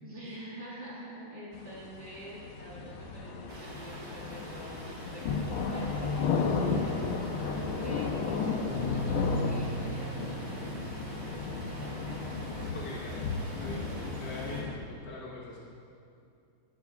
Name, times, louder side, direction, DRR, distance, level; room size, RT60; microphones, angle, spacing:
voice 1, 0.0-12.2, right 1 dB, 10° left, -9 dB, 2.6 m, -47 dB
sound 1, 1.5-14.8, left 4 dB, 80° left, 1.7 m, -34 dB
sound 2, 3.5-14.6, right 2 dB, 80° right, 2.6 m, -47 dB
Bass guitar, 8.7-14.9, equal, 10° right, 1.7 m, -40 dB
voice 2, 12.7-13.3 13.6-15.6, left 2 dB, 55° left, -4 dB, 1.8 m, -42 dB
18.0 x 11.5 x 2.4 m, 2.5 s
omnidirectional pair, 2.3 m